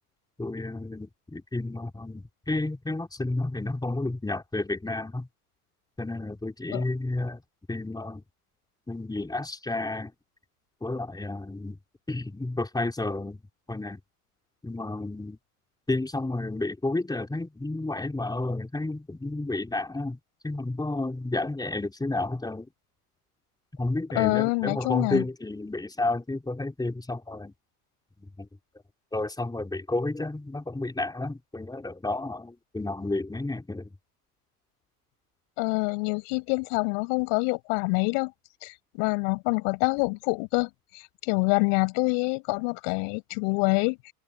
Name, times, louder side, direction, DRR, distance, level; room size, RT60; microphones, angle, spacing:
voice 1, 0.4-5.3 6.0-7.4 7.7-8.2 8.9-10.1 10.8-11.8 12.1-13.4 13.7-14.0 14.6-15.4 15.9-20.2 20.4-22.7 23.8-27.5 28.2-28.5 29.1-34.0, left 2 dB, 10° left, 3.6 m, -31 dB
voice 2, 24.1-25.2 35.6-38.3 38.6-44.1, left 40 dB or more, 65° left, 8.0 m, -26 dB
hypercardioid pair, 85°, 47 cm